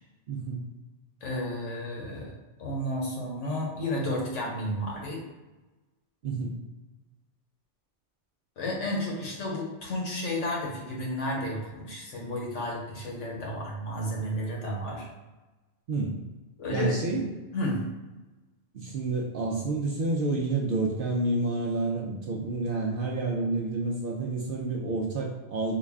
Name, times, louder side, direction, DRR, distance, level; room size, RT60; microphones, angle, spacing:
voice 1, 0.3-0.6 6.2-6.6 15.9-16.2 16.7-17.3 18.7-25.7, right 3 dB, 60° right, -1 dB, 0.6 m, -29 dB
voice 2, 1.2-2.3 2.6-5.2 8.6-15.1 16.6-17.0 17.5-17.8, left 1 dB, 80° left, -2 dB, 1.3 m, -32 dB
3.8 x 2.1 x 3.5 m, 1.1 s
omnidirectional pair, 1.3 m